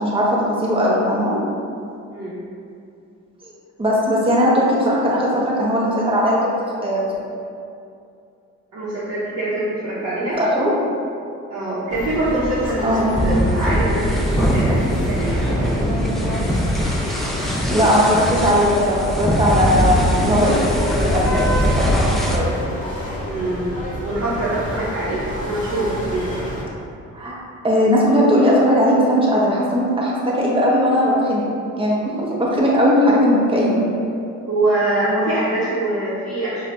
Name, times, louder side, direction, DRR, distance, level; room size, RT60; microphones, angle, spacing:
voice 1, 0.0-1.4 3.4-3.5 3.8-7.1 10.4-10.7 12.8-13.1 17.7-22.5 27.1-27.3 27.6-31.4 31.8-33.8, equal, 20° right, -5 dB, 0.8 m, -18 dB
voice 2, 8.7-10.4 11.5-13.0 13.2-15.8 23.3-23.7 24.0-26.4 34.5-36.7, right 1 dB, 55° right, -11 dB, 0.9 m, -24 dB
sound 1, 11.9-26.6, equal, 25° left, 1.0 m, -28 dB
sound 2, 13.1-22.4, equal, ahead, 0.3 m, -22 dB
5.0 x 2.3 x 2.6 m, 2.5 s
cardioid pair, 90°, 30 cm